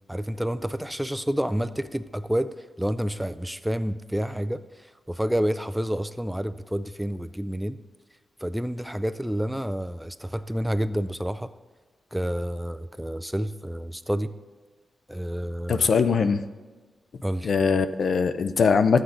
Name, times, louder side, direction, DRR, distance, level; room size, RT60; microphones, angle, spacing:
voice 1, 0.1-7.8 8.4-11.5 12.1-14.3 15.1-15.9 17.2-17.5, equal, 5° right, 12 dB, 0.3 m, -29 dB
voice 2, 15.7-16.4 17.4-19.0, left 5 dB, 65° left, 11 dB, 0.5 m, -21 dB
13.0 x 8.0 x 3.8 m, 1.3 s
wide cardioid pair, 125°, 0 cm